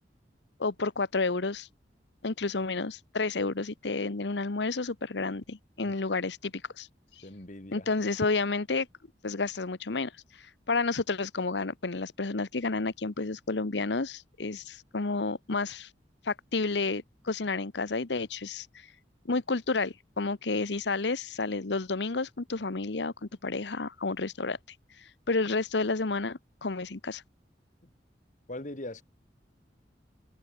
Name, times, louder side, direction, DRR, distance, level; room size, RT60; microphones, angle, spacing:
voice 1, 0.6-1.7 2.2-6.9 7.7-8.9 9.2-10.1 10.7-15.9 16.2-18.7 19.2-24.6 25.3-27.2, left 3 dB, 80° left, 1.0 m, -30 dB
voice 2, 7.2-7.9 28.5-29.0, left 1 dB, 45° left, 2.3 m, -40 dB
head